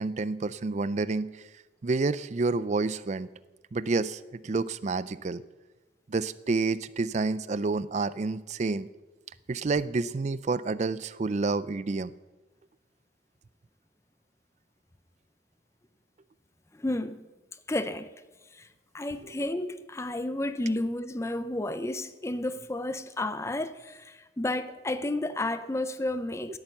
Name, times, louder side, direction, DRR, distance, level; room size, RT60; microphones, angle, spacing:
voice 1, 0.0-1.3 1.8-3.3 3.7-5.4 6.1-8.9 9.5-12.1, right 3 dB, 40° right, 0.4 m, -29 dB
voice 2, 16.7-17.2 17.7-18.1 18.5-18.7 18.9-26.6, left 1 dB, 15° left, 0.5 m, -31 dB
18.5 x 8.9 x 7.1 m
head